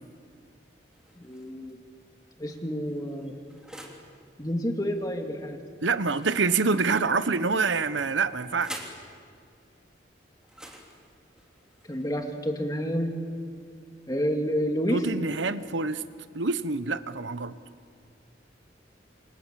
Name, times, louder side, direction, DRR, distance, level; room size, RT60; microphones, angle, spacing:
sound 1, 0.9-1.7 2.4-4.1 6.1-7.2 8.1-9.1 10.4-12.4, right 1 dB, 5° right, 3.1 m, -46 dB
voice 1, 1.2-1.8 2.4-3.3 4.4-5.6 11.9-13.2 14.1-15.1, equal, 20° left, 4 dB, 2.3 m, -29 dB
voice 2, 5.8-8.8 14.9-16.0 16.3-17.6, right 4 dB, 85° right, 13 dB, 1.1 m, -26 dB
27.5 x 27.5 x 7.6 m, 2.2 s
head